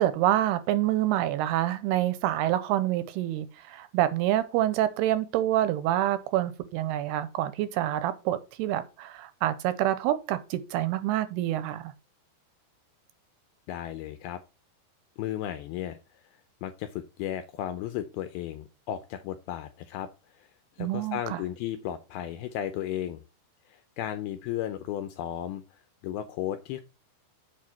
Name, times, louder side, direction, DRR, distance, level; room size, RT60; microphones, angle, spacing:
voice 1, 0.0-11.9 20.8-21.4, right 13 dB, 85° right, 2.5 m, -27 dB
voice 2, 13.7-14.4 15.2-16.0 16.6-20.1 20.4-20.5 20.8-23.2 23.7-26.8, left 11 dB, 85° left, 2.2 m, -34 dB
7.6 x 4.7 x 5.6 m
omnidirectional pair, 4.9 m